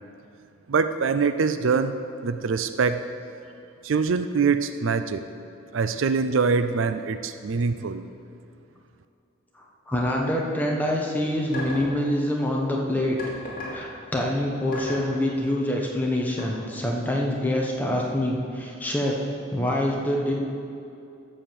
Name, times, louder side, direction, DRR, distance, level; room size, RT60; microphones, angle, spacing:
voice 1, 0.7-3.0 3.8-5.2 5.7-8.1, right 5 dB, 70° right, 10 dB, 0.4 m, -24 dB
voice 2, 9.6-13.2 13.7-19.1 19.5-20.3, left 1 dB, 10° left, -2 dB, 1.2 m, -26 dB
sound 1, 11.5-11.9 13.2-13.8 14.7-15.1 16.4-16.5, left 2 dB, 45° left, 2.7 m, -34 dB
13.5 x 5.0 x 7.5 m, 2.6 s
head